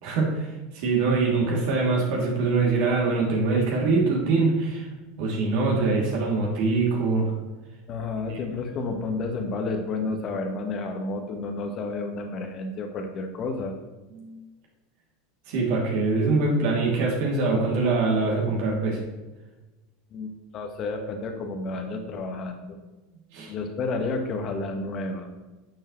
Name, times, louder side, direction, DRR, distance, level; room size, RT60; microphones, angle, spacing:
voice 1, 0.0-4.9 5.2-7.3 8.3-8.4 14.1-14.4 15.5-19.0 23.3-23.5, right 3 dB, 60° right, -2 dB, 2.8 m, -23 dB
voice 2, 7.9-13.7 20.1-22.8 23.5-25.3, left 3 dB, 45° left, 4 dB, 1.4 m, -31 dB
10.5 x 7.2 x 3.2 m, 1.1 s
hypercardioid pair, 80°, 0 cm